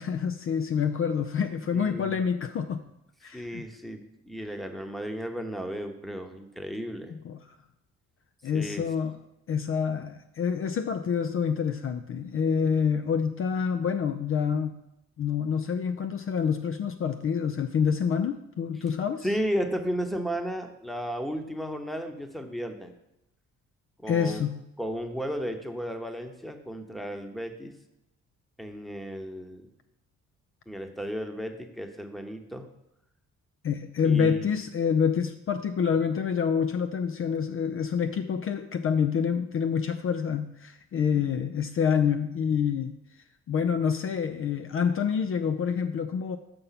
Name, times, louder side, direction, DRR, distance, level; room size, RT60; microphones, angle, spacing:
voice 1, 0.0-2.8 3.2-3.6 7.1-7.5 8.4-9.2 9.5-14.8 15.2-19.3 24.1-24.6 33.6-43.0 43.5-46.4, left 7 dB, 45° left, 8 dB, 0.5 m, -27 dB
voice 2, 1.7-2.2 3.3-7.1 8.5-8.8 19.2-22.9 24.0-24.4 24.8-27.7 28.6-29.7 30.7-32.7 34.0-34.5, equal, ahead, 6 dB, 1.0 m, -34 dB
6.9 x 5.5 x 5.8 m, 0.83 s
cardioid pair, 90°, 30 cm